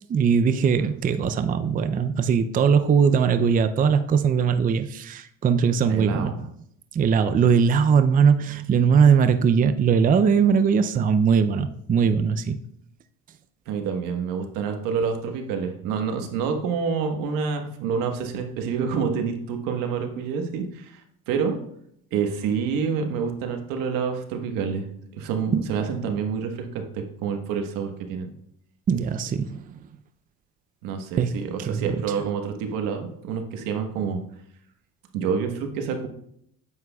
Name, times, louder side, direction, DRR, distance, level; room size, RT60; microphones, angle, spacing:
voice 1, 0.1-6.5 6.9-12.6 25.5-25.7 28.9-29.8 31.2-32.0, right 6 dB, 25° right, 0.4 m, -20 dB
voice 2, 5.9-6.4 13.7-21.0 21.3-21.6 22.1-24.8 25.1-28.3 30.8-34.2 35.1-36.1, right 6 dB, 85° right, 1.3 m, -28 dB
9.3 x 8.1 x 2.3 m
cardioid pair, 105°, 33 cm